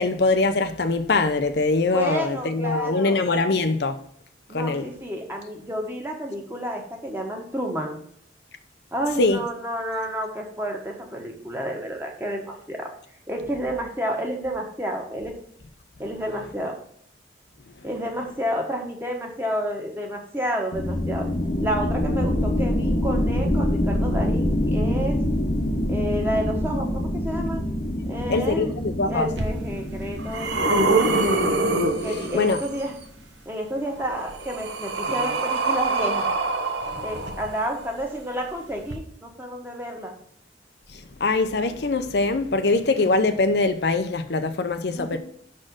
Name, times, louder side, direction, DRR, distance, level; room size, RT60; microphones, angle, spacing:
voice 1, 0.0-4.0 4.5-4.9 9.2-9.4 28.3-29.3 32.3-32.6 40.9-45.2, left 3 dB, 65° left, 0.6 m, -23 dB
voice 2, 1.9-3.2 4.5-8.0 8.9-12.9 13.3-15.4 16.0-16.8 17.8-21.3 21.6-25.2 25.9-27.6 28.1-28.7 29.1-31.2 32.0-33.0 33.4-36.3 37.0-40.1 44.9-45.2, equal, 10° right, 1.3 m, -30 dB
sound 1, 20.7-33.0, left 1 dB, 45° left, 0.9 m, -26 dB
sound 2, 29.4-29.5 30.0-32.8 34.0-37.9 38.8-38.9, right 2 dB, 80° right, 1.1 m, -24 dB
6.3 x 4.3 x 6.3 m
head